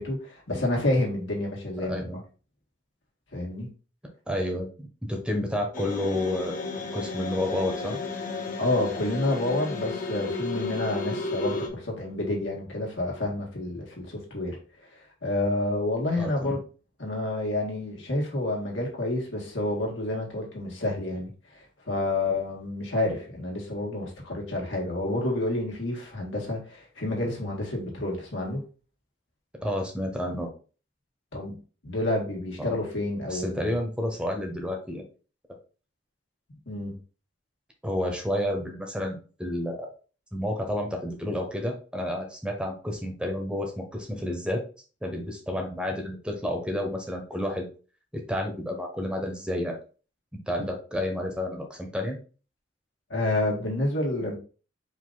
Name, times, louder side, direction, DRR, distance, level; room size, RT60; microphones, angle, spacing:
voice 1, 0.0-2.1 3.3-3.7 8.6-16.6 17.0-28.6 31.3-31.6 31.8-33.7 36.7-37.0 53.1-54.4, left 2 dB, 85° left, 1.8 m, -29 dB
voice 2, 1.8-2.2 4.3-6.6 6.9-8.0 16.2-16.6 29.5-30.5 32.6-32.7 33.3-35.0 37.8-39.9 40.3-44.6 45.0-47.7 48.1-49.8 50.5-52.2, left 1 dB, 5° right, 0.8 m, -30 dB
sound 1, 5.7-11.7, left 3 dB, 45° left, 0.8 m, -33 dB
5.0 x 2.6 x 3.8 m
head